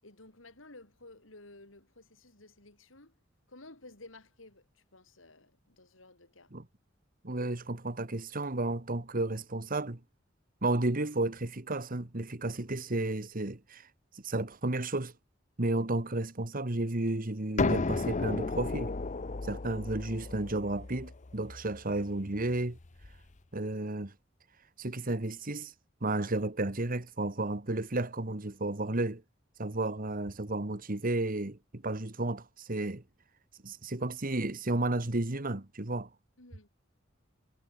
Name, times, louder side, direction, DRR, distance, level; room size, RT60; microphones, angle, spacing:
voice 1, 0.0-3.2 3.5-6.5 36.4-36.7, left 2 dB, 85° left, 5.6 m, -54 dB
voice 2, 7.2-10.0 10.6-13.9 14.2-15.1 15.6-18.9 19.4-22.8 23.5-24.1 24.8-25.7 26.0-29.2 29.6-33.0 33.6-36.1, right 2 dB, 45° right, 1.7 m, -32 dB
sound 1, 17.6-23.2, left 3 dB, 40° left, 0.8 m, -34 dB
head